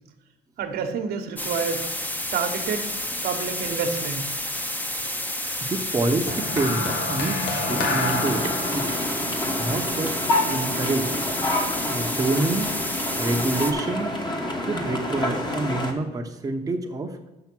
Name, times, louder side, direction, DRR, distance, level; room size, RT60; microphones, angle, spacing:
voice 1, 0.6-1.9 2.3-2.9 3.2-4.4, right 6 dB, 70° right, 4 dB, 1.1 m, -28 dB
sound 1, 1.4-13.7, left 1 dB, 10° left, 0.8 m, -30 dB
voice 2, 5.6-8.9 9.6-11.2 11.9-12.7 13.2-14.2 14.6-17.2, right 2 dB, 20° right, 2 dB, 0.8 m, -27 dB
sound 2, 6.3-10.7 11.6-11.9, left 2 dB, 80° left, 1.4 m, -29 dB
sound 3, 7.6-15.9, left 1 dB, 25° left, 1.2 m, -28 dB
6.4 x 5.9 x 6.1 m, 1.1 s
cardioid pair, 110°, 17 cm